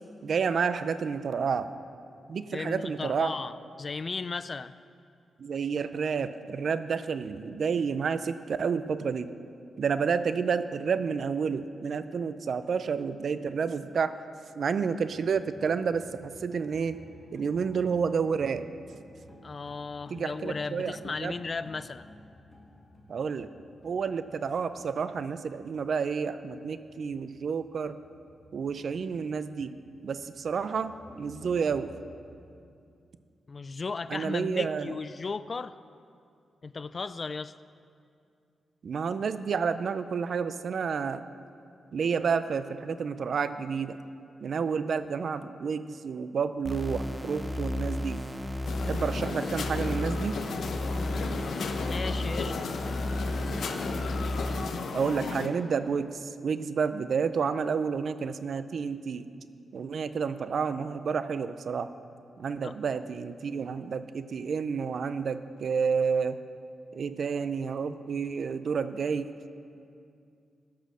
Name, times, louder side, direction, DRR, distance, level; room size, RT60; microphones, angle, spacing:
voice 1, 0.2-1.7 2.3-3.3 5.4-9.3 9.8-14.2 14.6-17.0 17.3-18.7 20.1-21.3 23.1-23.5 23.8-28.0 28.5-29.8 30.0-31.9 34.1-35.0 38.8-41.2 41.9-44.0 44.4-48.2 48.9-50.4 54.9-59.3 59.7-61.9 62.4-66.4 66.9-69.3, right 6 dB, 65° right, 12 dB, 0.5 m, -30 dB
voice 2, 2.5-4.7 19.4-22.1 33.5-35.8 36.6-37.5 51.0-52.8 62.6-62.8, left 4 dB, 40° left, 15 dB, 0.3 m, -36 dB
sound 1, 15.0-32.0, left 1 dB, 25° left, 1.3 m, -54 dB
sound 2, 46.6-54.6, left 1 dB, 10° right, 0.9 m, -33 dB
sound 3, 48.7-55.5, left 5 dB, 75° left, 0.7 m, -35 dB
15.5 x 6.3 x 6.3 m, 2.4 s
cardioid pair, 100°, 0 cm